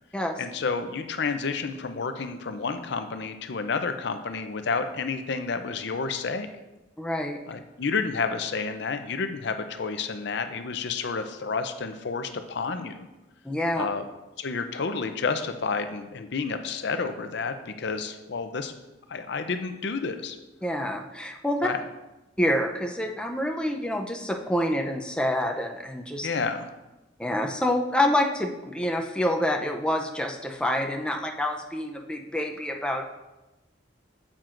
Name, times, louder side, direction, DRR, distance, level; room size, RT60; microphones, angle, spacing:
voice 1, 0.4-6.5 7.5-13.1 13.7-14.0 14.4-18.7 19.1-20.4 21.6-21.8 26.2-26.7, left 4 dB, 60° left, 8 dB, 0.5 m, -30 dB
voice 2, 7.0-7.4 13.4-13.9 20.6-21.7 22.4-26.3 27.2-33.0, left 1 dB, 5° left, 2 dB, 0.5 m, -27 dB
9.1 x 7.4 x 2.5 m, 1.0 s
head